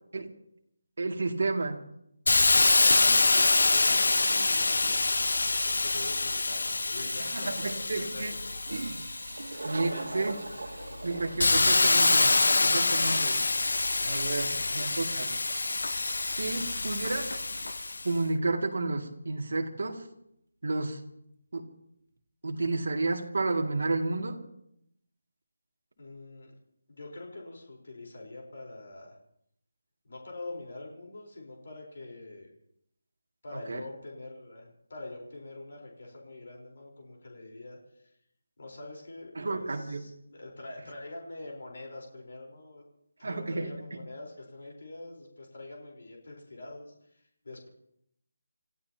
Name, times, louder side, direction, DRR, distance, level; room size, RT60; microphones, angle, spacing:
voice 1, 1.0-1.8 3.1-3.2 7.3-8.3 9.6-10.4 11.0-12.3 12.6-13.4 14.1-15.4 16.2-17.4 18.0-20.0 20.6-21.0 21.5-21.6 22.4-24.4 33.7-33.8 39.4-40.1 43.2-44.0, right 3 dB, 55° right, 1 dB, 2.4 m, -31 dB
Hiss, 2.3-9.8 10.3-18.1, left 3 dB, 65° left, 0.7 m, -26 dB
voice 2, 2.6-5.3 5.6-8.6 9.5-11.2 11.5-11.9 14.5-15.1 26.0-26.5 26.9-29.2 30.0-32.5 33.4-38.1 38.6-42.8 43.2-47.7, left 2 dB, 45° left, 0 dB, 4.2 m, -45 dB
Toilet flush, 8.7-18.0, right 3 dB, 90° right, 1.6 m, -43 dB
29.0 x 15.5 x 2.9 m, 0.76 s
figure-of-eight pair, 180°, 0 cm